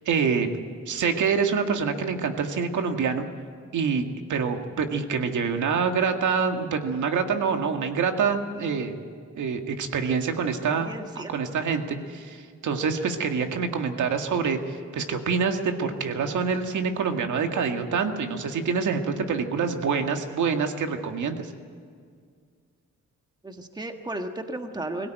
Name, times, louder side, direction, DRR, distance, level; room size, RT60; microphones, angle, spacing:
voice 1, 0.1-0.5 0.9-3.3 3.7-4.0 4.3-9.0 9.4-10.9 11.2-21.5, right 5 dB, 85° right, 5 dB, 2.0 m, -26 dB
voice 2, 10.7-11.3 23.4-25.1, right 2 dB, 15° right, 5 dB, 1.5 m, -34 dB
23.0 x 17.0 x 9.2 m, 2.1 s
wide cardioid pair, 165°, 29 cm